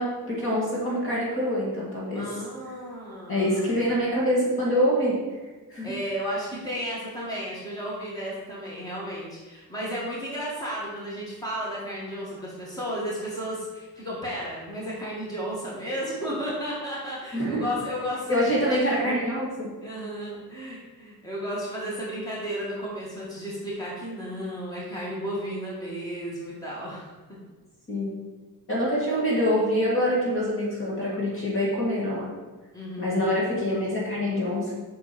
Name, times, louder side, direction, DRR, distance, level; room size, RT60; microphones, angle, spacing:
voice 1, 0.0-2.3 3.3-5.2 5.7-5.9 17.3-17.7 18.3-19.7 27.9-28.1 28.7-32.3 33.0-34.7, equal, 35° left, -5 dB, 2.1 m, -25 dB
voice 2, 2.1-4.0 5.8-18.9 19.8-27.1 32.7-33.3, equal, 10° left, -6 dB, 2.1 m, -33 dB
8.0 x 6.2 x 4.4 m, 1.3 s
wide cardioid pair, 180°, 37 cm